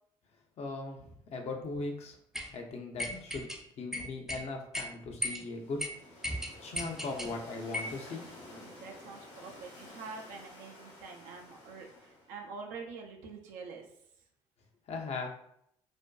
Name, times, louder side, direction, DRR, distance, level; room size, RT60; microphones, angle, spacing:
voice 1, 0.6-2.2 2.5-3.5 3.8-5.8 6.6-8.3 14.9-15.3, left 3 dB, 50° left, 2 dB, 0.5 m, -39 dB
sound 1, 2.3-2.5 3.0-3.6 3.9-4.4 4.7-4.9 5.2-5.4 5.8-5.9 6.2-7.3 7.7-8.0, equal, 5° right, 0.4 m, -36 dB
sound 2, 5.3-12.4, left 1 dB, 85° left, 1.0 m, -52 dB
voice 2, 8.4-13.9, right 4 dB, 75° right, 2 dB, 0.5 m, -46 dB
2.5 x 2.1 x 2.2 m, 0.71 s
hypercardioid pair, 55°, 14 cm